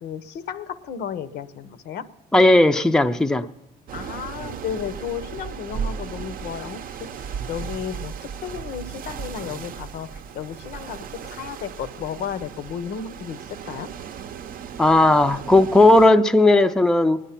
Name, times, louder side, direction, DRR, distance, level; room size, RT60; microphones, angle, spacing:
voice 1, 0.0-2.1 3.9-8.1 8.4-13.9, left 8 dB, 75° left, 13 dB, 0.7 m, -33 dB
voice 2, 2.3-3.5 14.8-17.2, left 2 dB, 5° left, 8 dB, 0.4 m, -16 dB
sound 1, 3.9-16.1, right 7 dB, 55° right, 0.6 m, -36 dB
20.5 x 10.0 x 5.8 m, 0.96 s
cardioid pair, 110°, 17 cm